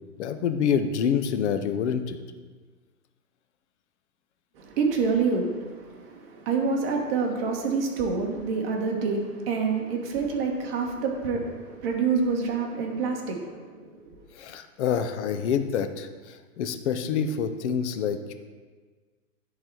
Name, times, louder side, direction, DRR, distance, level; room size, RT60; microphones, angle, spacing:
voice 1, 0.2-2.2 14.4-18.3, left 7 dB, 45° left, 8 dB, 0.7 m, -27 dB
voice 2, 4.6-14.1, right 4 dB, 40° right, 1 dB, 1.3 m, -27 dB
10.0 x 4.1 x 4.6 m, 1.4 s
hypercardioid pair, 140°, 48 cm